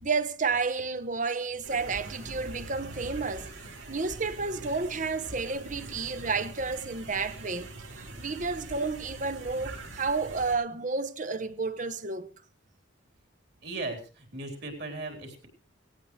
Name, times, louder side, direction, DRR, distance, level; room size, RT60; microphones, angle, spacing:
voice 1, 0.0-3.5 3.9-12.3, right 4 dB, 40° right, 1.0 m, -31 dB
sound 1, 1.6-10.5, right 2 dB, 75° right, 5.6 m, -43 dB
voice 2, 13.6-15.5, right 2 dB, 55° right, 3.8 m, -37 dB
18.0 x 17.5 x 3.2 m
head